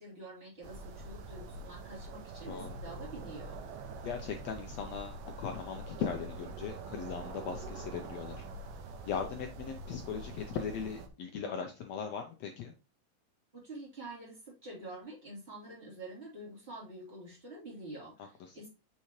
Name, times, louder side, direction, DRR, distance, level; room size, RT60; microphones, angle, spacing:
voice 1, 0.0-3.6 13.5-18.7, right 2 dB, 15° right, -4 dB, 3.3 m, -47 dB
sound 1, 0.6-11.1, right 3 dB, 80° right, 2.5 m, -44 dB
voice 2, 2.5-2.8 4.0-8.5 9.0-12.7 18.4-18.6, left 7 dB, 80° left, 4 dB, 1.5 m, -39 dB
6.9 x 5.8 x 3.1 m, 0.29 s
omnidirectional pair, 3.9 m